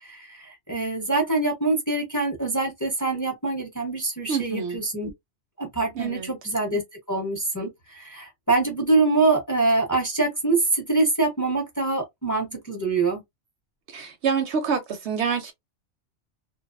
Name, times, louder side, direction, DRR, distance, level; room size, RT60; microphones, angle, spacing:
voice 1, 0.0-5.1 5.6-6.8 7.1-13.2, right 3 dB, 20° left, 0.7 m, -24 dB
voice 2, 4.3-4.8 6.0-6.3 13.9-15.5, right 6 dB, 65° right, 0.8 m, -27 dB
2.5 x 2.2 x 2.4 m
omnidirectional pair, 1.3 m